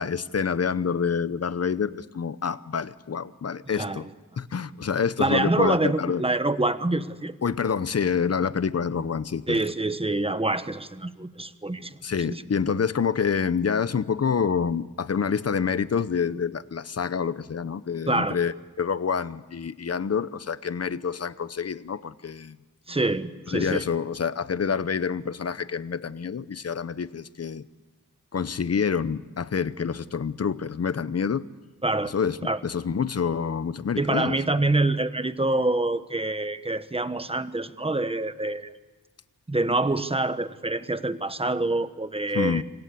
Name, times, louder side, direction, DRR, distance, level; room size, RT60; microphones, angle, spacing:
voice 1, 0.0-4.1 4.4-6.2 7.4-9.6 12.0-18.5 18.8-22.6 23.5-27.6 28.3-31.4 32.0-32.4 32.6-34.4 42.3-42.6, left 6 dB, 45° left, 15 dB, 0.9 m, -27 dB
voice 2, 3.7-4.1 5.2-7.4 9.5-12.0 12.3-12.4 18.1-18.4 22.9-23.8 31.8-32.1 32.4-32.6 34.0-38.7 39.5-42.6, right 2 dB, 15° right, 11 dB, 1.1 m, -26 dB
27.5 x 25.0 x 8.3 m, 1.2 s
wide cardioid pair, 130°, 34 cm